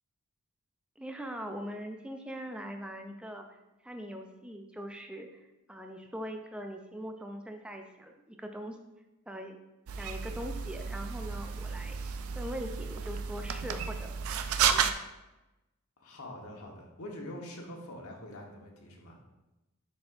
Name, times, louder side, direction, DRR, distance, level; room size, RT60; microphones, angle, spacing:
voice 1, 1.0-3.6 3.8-5.3 5.7-8.8 9.3-9.6 10.0-12.0 12.3-14.1 14.6-14.9, equal, 5° right, 4 dB, 0.4 m, -41 dB
sound 1, 9.9-14.9, right 7 dB, 80° right, 0.4 m, -32 dB
voice 2, 16.0-19.2, left 1 dB, 85° left, 0 dB, 1.2 m, -44 dB
10.5 x 4.3 x 2.5 m, 1.0 s
head